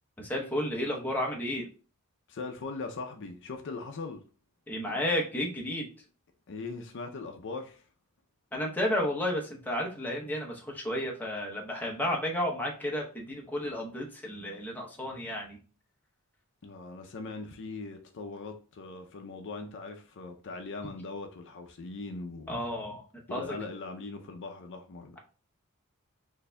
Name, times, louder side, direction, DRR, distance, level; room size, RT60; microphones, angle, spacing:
voice 1, 0.2-1.6 4.7-5.9 8.5-15.6 22.5-23.6, left 1 dB, 10° left, 0.8 m, -32 dB
voice 2, 2.3-4.2 6.5-7.9 16.6-22.5 23.3-25.2, left 3 dB, 60° left, 0.5 m, -40 dB
6.4 x 2.6 x 2.2 m
head